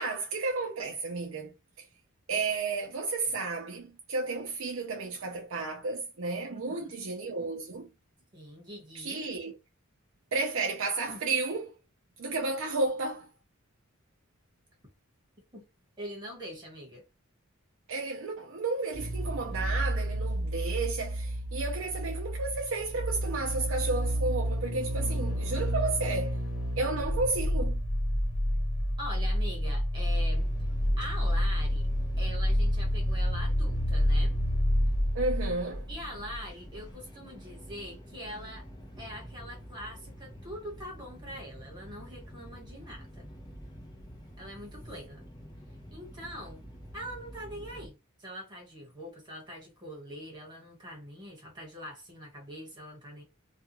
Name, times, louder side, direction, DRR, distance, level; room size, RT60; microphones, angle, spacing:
voice 1, 0.0-1.5 2.3-7.9 9.0-9.5 10.3-11.7 12.2-13.3 17.9-26.4 26.8-27.8 35.1-35.8, right 3 dB, 65° right, 0.5 m, -32 dB
voice 2, 6.5-6.9 8.3-9.2 11.1-11.2 15.5-15.6 16.0-17.0 29.0-30.5 31.0-31.9 32.2-34.4 35.9-38.6 39.0-43.3 44.4-45.2 45.9-46.7 46.9-53.2, equal, 20° right, 1.3 m, -43 dB
sound 1, 18.9-36.5 36.7-36.8, equal, 65° left, 1.1 m, -29 dB
sound 2, 30.2-47.9, equal, 20° left, 0.8 m, -48 dB
2.4 x 2.3 x 2.9 m
head